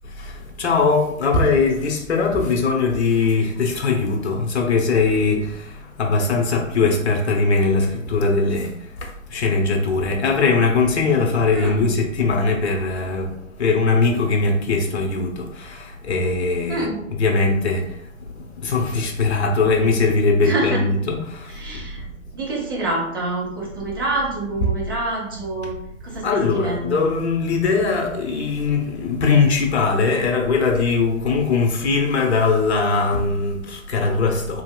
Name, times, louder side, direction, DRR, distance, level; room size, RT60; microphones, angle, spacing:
voice 1, 0.0-21.6 24.6-24.7 25.6-25.7 26.1-34.6, left 4 dB, 55° left, 0.7 m, -21 dB
voice 2, 11.5-11.9 16.7-17.0 20.4-20.8 21.5-22.0 22.3-25.7 26.0-27.1, right 2 dB, 20° right, 0.4 m, -27 dB
3.1 x 2.8 x 2.2 m
figure-of-eight pair, 125°, 40 cm